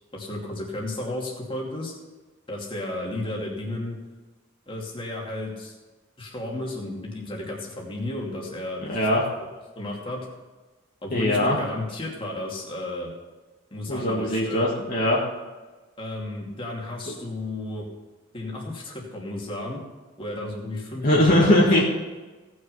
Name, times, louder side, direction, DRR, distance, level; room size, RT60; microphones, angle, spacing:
voice 1, 0.1-1.9 2.5-4.0 4.7-5.7 6.2-9.1 9.7-10.3 11.0-13.1 13.7-14.7 16.0-17.9 18.3-19.8 20.2-21.8, left 1 dB, 25° left, -2 dB, 2.6 m, -33 dB
voice 2, 8.9-9.2 11.1-11.6 13.9-15.2 21.0-21.8, left 1 dB, 45° left, -4 dB, 2.0 m, -20 dB
17.5 x 6.4 x 5.7 m, 1.2 s
head